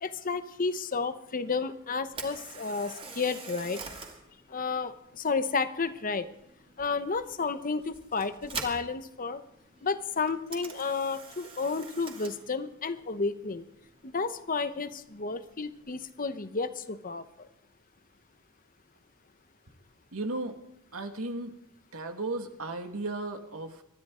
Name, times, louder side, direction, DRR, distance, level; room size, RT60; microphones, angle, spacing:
voice 1, 0.0-3.8 4.5-6.3 6.8-9.4 9.8-13.6 14.0-17.5, left 4 dB, 40° left, 11 dB, 0.9 m, -32 dB
Camera, 2.0-16.1, right 4 dB, 25° right, 2.3 m, -46 dB
voice 2, 20.1-20.6 20.9-21.6 21.9-23.8, right 2 dB, 85° right, 6 dB, 1.9 m, -35 dB
25.5 x 12.5 x 3.8 m, 0.81 s
head